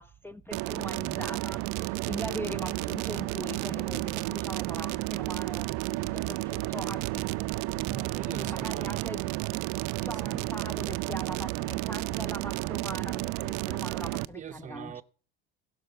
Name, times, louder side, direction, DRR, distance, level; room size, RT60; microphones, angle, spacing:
voice 1, 0.0-7.3 8.3-9.3 10.0-15.0, left 1 dB, 5° left, 0.5 m, -41 dB
sound 1, 0.5-14.3, right 21 dB, 60° right, 0.5 m, -32 dB
voice 2, 7.8-9.1 10.2-10.6 14.3-15.0, right 8 dB, 25° right, 0.7 m, -40 dB
16.0 x 6.0 x 7.0 m
supercardioid pair, 105°, 30 cm